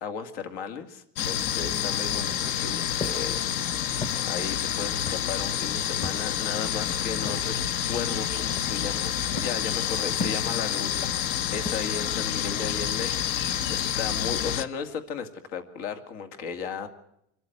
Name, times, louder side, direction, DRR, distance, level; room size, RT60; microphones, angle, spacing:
voice 1, 0.0-7.5 7.9-11.1 11.5-16.9, left 6 dB, 80° left, 7 dB, 2.4 m, -35 dB
sound 1, 1.2-14.6, left 10 dB, 65° left, 1.2 m, -28 dB
Walk footsteps, 2.9-3.3 4.0-4.2 5.1-5.4 6.0-6.4 7.2-7.6 8.5-9.0 9.4-9.7 10.2-10.7 11.6-12.1, left 3 dB, 15° left, 0.8 m, -36 dB
25.0 x 14.0 x 8.1 m, 0.78 s
cardioid pair, 160°, 35 cm